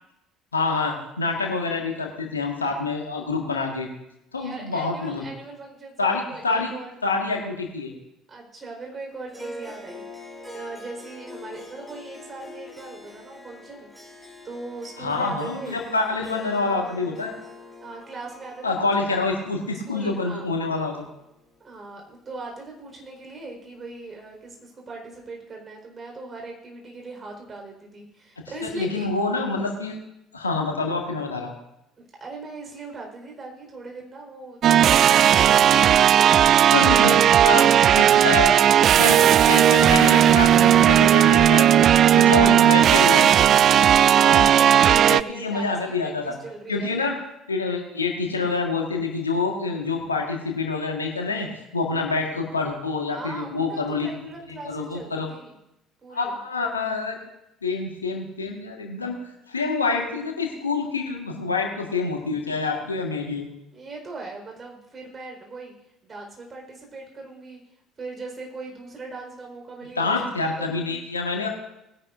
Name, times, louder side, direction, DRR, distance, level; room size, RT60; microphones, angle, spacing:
voice 1, 0.5-3.9 4.3-5.2 6.0-6.7 7.0-7.9 15.0-17.3 18.6-21.0 28.8-30.0 30.3-31.5 36.7-37.2 37.4-37.6 38.0-38.7 39.0-41.8 42.1-43.3 44.2-44.5 44.8-46.3 46.7-47.1 47.5-51.5 51.7-54.1 54.7-55.3 56.1-57.2 57.6-59.2 59.5-63.5 70.0-71.5, left 3 dB, 85° left, 1 dB, 1.7 m, -26 dB
voice 2, 4.3-7.0 8.3-15.8 17.8-19.2 19.9-20.5 21.6-29.1 32.2-38.8 43.7-45.7 46.0-47.0 53.1-55.5 56.0-56.4 63.7-65.7 66.0-67.6 68.0-70.2 70.6-71.0, right 3 dB, 30° right, 0 dB, 4.7 m, -40 dB
Harp, 9.3-21.8, left 1 dB, 5° right, 3.6 m, -44 dB
sound 1, 34.6-45.2, right 10 dB, 45° right, 0.3 m, -16 dB
20.0 x 10.5 x 2.7 m, 0.88 s
figure-of-eight pair, 55°, 0 cm